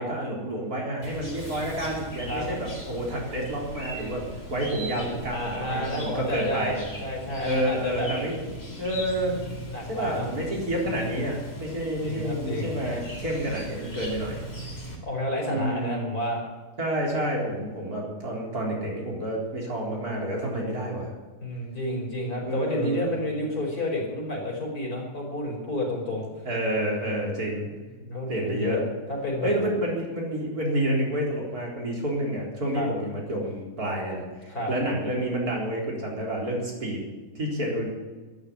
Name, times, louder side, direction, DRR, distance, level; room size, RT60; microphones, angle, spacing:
voice 1, 0.0-4.2 4.5-6.8 7.4-9.4 9.9-14.4 15.5-16.1 16.8-21.1 22.4-23.1 26.4-27.7 28.3-28.8 29.4-37.0 37.3-37.9, right 1 dB, 60° right, -2 dB, 4.6 m, -29 dB
Chirp tweet, 1.0-14.9, equal, 35° left, 4.0 m, -39 dB
voice 2, 5.3-8.1 9.7-10.3 12.0-12.8 15.0-16.4 21.4-26.3 28.0-28.8 29.1-29.7 32.7-32.9 34.5-34.7, left 1 dB, 60° left, -1 dB, 5.2 m, -30 dB
12.0 x 11.5 x 9.9 m, 1.3 s
omnidirectional pair, 1.8 m